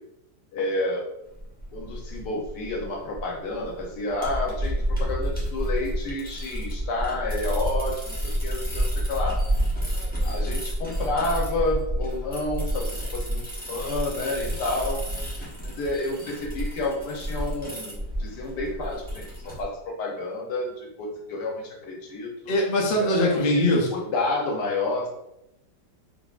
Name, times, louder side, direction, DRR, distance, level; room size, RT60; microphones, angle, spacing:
voice 1, 0.5-1.0 1.7-9.4 10.2-15.0 15.6-22.3 23.0-25.1, left 2 dB, 75° left, -1 dB, 1.3 m, -30 dB
sound 1, 1.3-19.6, equal, 10° left, 0.5 m, -29 dB
voice 2, 22.5-23.9, left 1 dB, 55° left, -2 dB, 0.6 m, -21 dB
3.7 x 2.9 x 2.4 m, 0.86 s
omnidirectional pair, 1.8 m